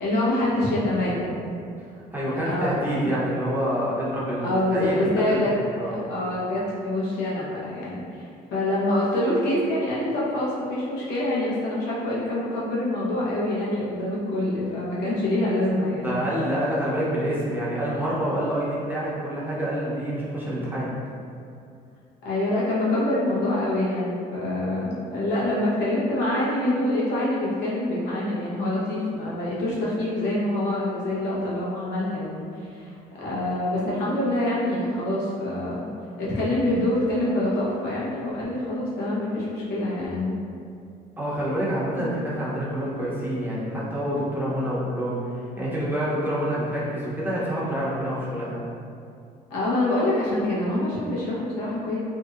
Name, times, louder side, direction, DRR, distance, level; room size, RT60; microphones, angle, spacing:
voice 1, 0.0-1.4 2.5-3.1 4.4-5.5 6.1-16.2 22.2-35.9 36.2-40.4 42.0-42.2 49.5-52.0, left 1 dB, 85° left, -7 dB, 0.9 m, -26 dB
voice 2, 2.1-4.9 5.3-6.0 16.0-20.9 41.2-48.6, equal, 10° right, -8 dB, 0.7 m, -27 dB
2.9 x 2.7 x 2.4 m, 2.4 s
cardioid pair, 110°, 17 cm